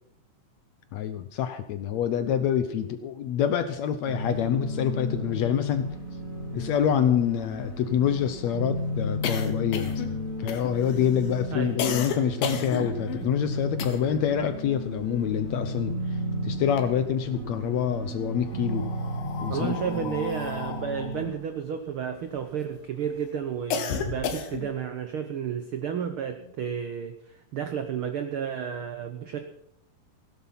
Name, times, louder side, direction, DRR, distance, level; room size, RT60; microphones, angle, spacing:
voice 1, 0.9-5.9 6.5-18.9 19.4-19.8, left 9 dB, 70° left, 10 dB, 1.7 m, -26 dB
sound 1, 4.1-21.3, equal, 25° right, 3.2 m, -33 dB
sound 2, 6.1-6.2 6.4-6.5 6.9-14.3 14.6-16.2 16.5-17.5 18.2-22.7 23.1-24.9, left 6 dB, 90° left, 3.0 m, -35 dB
voice 2, 19.5-29.4, right 8 dB, 75° right, 7 dB, 1.2 m, -32 dB
16.5 x 11.5 x 5.8 m, 0.77 s
omnidirectional pair, 3.8 m